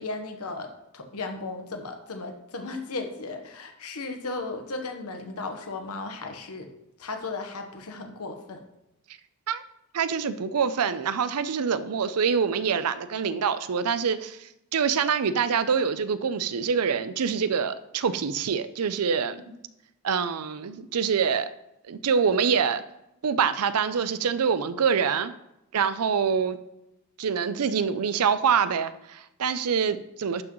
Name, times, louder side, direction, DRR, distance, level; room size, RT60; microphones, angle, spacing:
voice 1, 0.0-6.7 7.0-8.6 19.4-19.5, left 3 dB, 80° left, 5 dB, 1.1 m, -35 dB
voice 2, 9.9-19.4 20.0-21.5 21.9-22.8 23.2-25.3 25.7-26.6 27.2-30.4, right 6 dB, 80° right, 13 dB, 0.5 m, -25 dB
11.0 x 6.1 x 3.1 m, 0.87 s
head